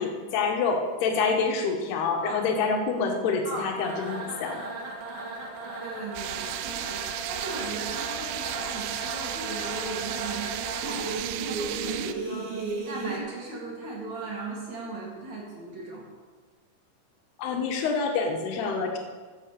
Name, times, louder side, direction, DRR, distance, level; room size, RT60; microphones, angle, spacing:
voice 1, 0.0-4.7 17.4-19.0, left 4 dB, 80° left, 3 dB, 3.3 m, -27 dB
sound 1, 3.8-13.2, right 3 dB, 65° right, 3.6 m, -35 dB
voice 2, 5.8-12.5 12.9-16.1, right 3 dB, 50° right, -3 dB, 3.3 m, -37 dB
sound 2, 6.2-12.1, right 14 dB, 85° right, 2.6 m, -35 dB
14.0 x 7.7 x 6.7 m, 1.4 s
omnidirectional pair, 4.6 m